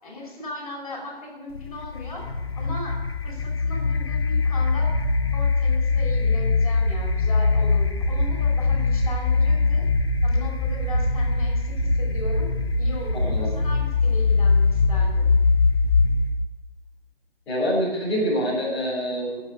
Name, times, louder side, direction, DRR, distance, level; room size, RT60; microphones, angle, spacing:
voice 1, 0.0-2.2 2.5-3.0 3.2-4.9 5.3-9.9 10.2-12.5 12.8-15.4, left 2 dB, 35° left, -3 dB, 5.5 m, -37 dB
sound 1, 1.6-16.4, left 3 dB, 75° left, 1.4 m, -22 dB
voice 2, 17.5-19.4, equal, 5° left, -13 dB, 3.2 m, -25 dB
14.0 x 8.3 x 9.5 m, 1.3 s
hypercardioid pair, 175°, 31 cm